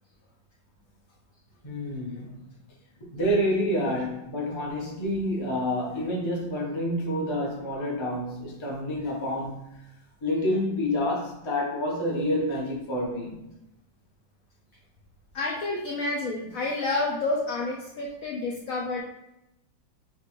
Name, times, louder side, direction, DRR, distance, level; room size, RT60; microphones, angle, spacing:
voice 1, 1.6-2.4 3.0-9.6 10.2-13.4, left 1 dB, 40° left, -3 dB, 0.4 m, -28 dB
voice 2, 15.3-19.0, left 2 dB, 90° left, -1 dB, 0.7 m, -29 dB
5.8 x 2.4 x 3.0 m, 0.90 s
omnidirectional pair, 2.1 m